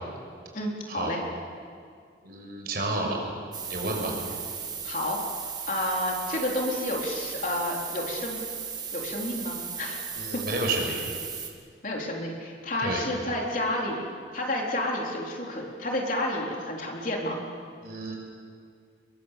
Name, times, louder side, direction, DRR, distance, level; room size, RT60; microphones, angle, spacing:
voice 1, 0.5-1.2 4.8-5.2 5.7-8.4 8.9-10.0 10.3-10.4 11.8-14.0 14.3-17.4, left 1 dB, 45° left, -1 dB, 4.0 m, -30 dB
voice 2, 2.2-3.2 3.7-4.1 10.1-11.0 12.8-13.0 17.8-18.2, right 2 dB, 50° right, 1 dB, 5.9 m, -30 dB
sound 1, 3.5-11.5, right 6 dB, 20° right, 2.1 m, -36 dB
28.5 x 22.0 x 7.6 m, 2.1 s
head